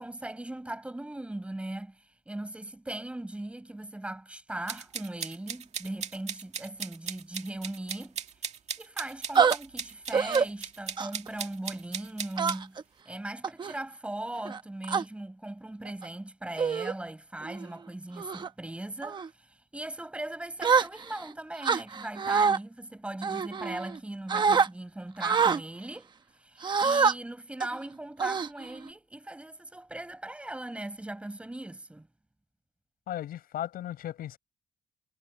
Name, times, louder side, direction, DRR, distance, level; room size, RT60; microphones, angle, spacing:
voice 1, 0.0-8.2 8.8-12.8 13.1-32.1, right 1 dB, 5° right, 5.4 m, -39 dB
sound 1, 4.7-12.6, right 7 dB, 45° right, 2.1 m, -37 dB
sound 2, 9.4-9.6 10.1-10.5 11.0-11.3 12.4-12.8 13.4-13.7 14.5-15.0 15.9-16.1 16.6-16.9 17.4-17.7 18.2-18.5 19.0-19.3 20.6-21.2 21.6-22.6 23.2-24.0 24.3-24.7 25.2-25.6 26.6-27.1 27.6-27.8 28.2-28.9, right 5 dB, 30° right, 1.0 m, -26 dB
voice 2, 33.1-34.4, left 12 dB, 65° left, 5.9 m, -36 dB
cardioid pair, 160°, 16 cm